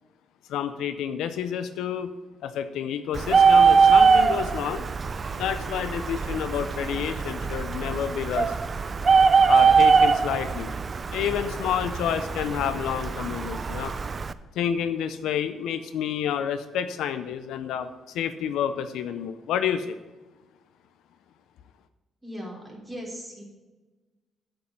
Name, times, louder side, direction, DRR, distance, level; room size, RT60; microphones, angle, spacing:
voice 1, 0.5-2.1 2.4-4.9 5.4-8.5 9.5-10.7 11.1-13.9 14.6-20.0, left 9 dB, 85° left, 10 dB, 0.5 m, -29 dB
Bird, 3.1-14.3, right 5 dB, 35° right, 0.4 m, -22 dB
voice 2, 22.2-23.4, equal, 15° right, -2 dB, 3.5 m, -38 dB
8.6 x 5.4 x 6.7 m, 1.2 s
cardioid pair, 90°, 0 cm